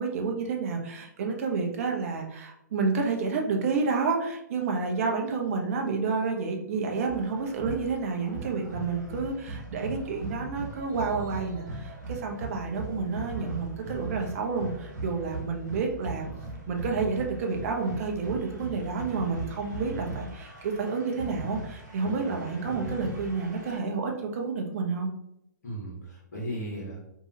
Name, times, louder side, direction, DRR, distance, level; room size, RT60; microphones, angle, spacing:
voice 1, 0.0-16.3 16.7-25.1, right 4 dB, 45° right, 2 dB, 0.6 m, -30 dB
sound 1, 7.1-23.8, right 2 dB, 70° right, 1.1 m, -39 dB
voice 2, 15.0-15.4 22.0-22.4 25.6-27.0, right 1 dB, 60° left, -4 dB, 1.1 m, -37 dB
2.7 x 2.3 x 2.8 m, 0.80 s
figure-of-eight pair, 120°, 10 cm